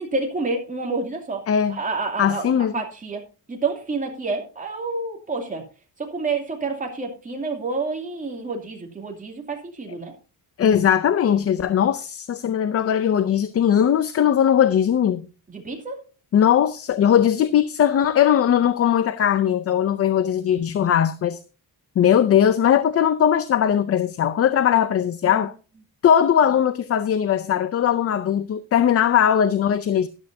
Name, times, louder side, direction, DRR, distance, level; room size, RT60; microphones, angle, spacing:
voice 1, 0.0-1.4 1.7-3.2 3.5-5.7 6.0-10.1 15.5-16.0 25.3-25.5, right 3 dB, 20° right, 2.6 m, -29 dB
voice 2, 1.5-1.8 2.2-2.7 10.6-15.3 16.3-21.4 22.0-25.5 26.0-30.1, left 9 dB, 35° left, 0.5 m, -19 dB
13.0 x 11.5 x 2.7 m
cardioid pair, 170°, 42 cm